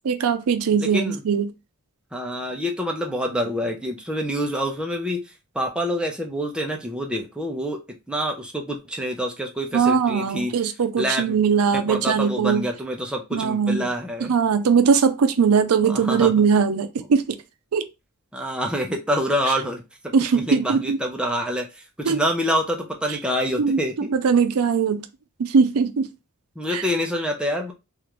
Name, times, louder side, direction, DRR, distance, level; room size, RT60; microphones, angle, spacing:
voice 1, 0.0-1.5 9.7-12.6 13.3-13.9 14.2-17.2 17.7-17.8 19.5-19.6 20.1-21.0 22.1-22.2 23.1-23.2 23.6-25.1 25.4-26.1 26.7-26.8, right 6 dB, 85° right, 0.5 m, -20 dB
voice 2, 0.8-1.2 2.1-5.2 5.5-7.8 8.1-10.5 11.0-11.4 11.7-14.3 15.9-16.3 18.3-24.1 26.6-27.7, equal, 5° right, 0.5 m, -26 dB
3.2 x 2.4 x 3.0 m
head